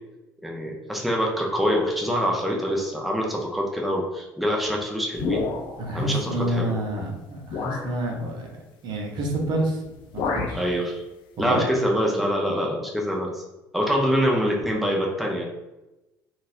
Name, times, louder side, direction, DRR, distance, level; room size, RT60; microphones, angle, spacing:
voice 1, 0.4-5.4 5.9-6.7 10.5-11.0 11.4-13.4 13.7-15.4, equal, ahead, -1 dB, 0.6 m, -25 dB
sound 1, 5.2-6.0 6.8-6.9 7.5-7.9 9.3-9.6 9.9-10.7, left 4 dB, 50° left, 0.5 m, -29 dB
voice 2, 5.8-9.8 10.1-10.6 11.4-11.6, right 1 dB, 45° right, 0 dB, 0.8 m, -28 dB
3.9 x 2.4 x 2.6 m, 0.99 s
figure-of-eight pair, 55°, 10 cm